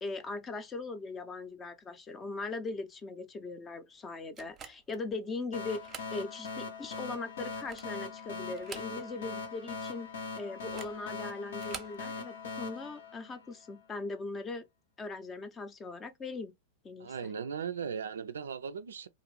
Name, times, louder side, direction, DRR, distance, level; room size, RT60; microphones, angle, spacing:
voice 1, 0.0-10.1 10.4-14.6 15.0-16.5 16.8-17.3, left 3 dB, 20° left, 0.5 m, -40 dB
sound 1, 4.4-5.0 5.7-6.2 6.6-6.7 7.4-8.0 8.5-9.3 9.6-9.7 10.6-11.0 11.5-12.0, right 7 dB, 25° right, 0.7 m, -47 dB
sound 2, 5.5-13.9, left 4 dB, 80° left, 0.9 m, -41 dB
voice 2, 17.0-19.1, right 7 dB, 90° right, 0.4 m, -37 dB
2.5 x 2.5 x 3.1 m
hypercardioid pair, 115°, 0 cm